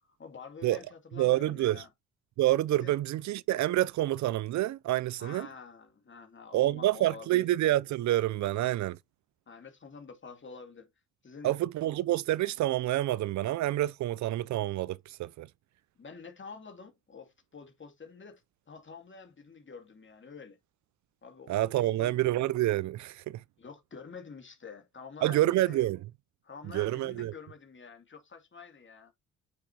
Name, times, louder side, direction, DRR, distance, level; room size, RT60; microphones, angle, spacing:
voice 1, 0.2-1.9 2.8-2.9 5.2-7.4 9.5-10.9 11.2-11.5 16.0-20.6 21.2-22.2 23.6-25.9 26.4-29.1, left 5 dB, 40° left, 2.6 m, -48 dB
voice 2, 1.2-1.8 2.4-5.5 6.5-9.0 11.4-15.5 21.5-23.4 25.2-26.0 26.7-27.3, right 15 dB, 65° right, 0.4 m, -28 dB
9.4 x 4.9 x 2.8 m
supercardioid pair, 60°, 31 cm